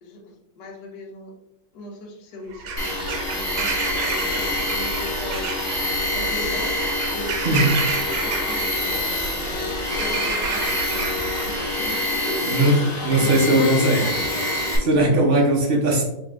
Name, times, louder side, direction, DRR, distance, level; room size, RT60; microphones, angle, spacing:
voice 1, 0.0-1.3 1.7-5.6 6.0-9.1 10.0-11.2 11.5-12.8 13.1-14.6 15.0-15.5, left 2 dB, 65° left, -1 dB, 1.3 m, -37 dB
Bird vocalization bird call bird song / Crow, 2.5-12.4, right 5 dB, 85° right, 1.5 m, -30 dB
Tools, 2.8-14.8, left 2 dB, 35° left, 1.1 m, -26 dB
voice 2, 7.4-7.8 12.4-14.0 14.8-16.0, right 1 dB, 40° right, -2 dB, 0.8 m, -19 dB
3.5 x 3.3 x 3.6 m, 0.87 s
omnidirectional pair, 2.2 m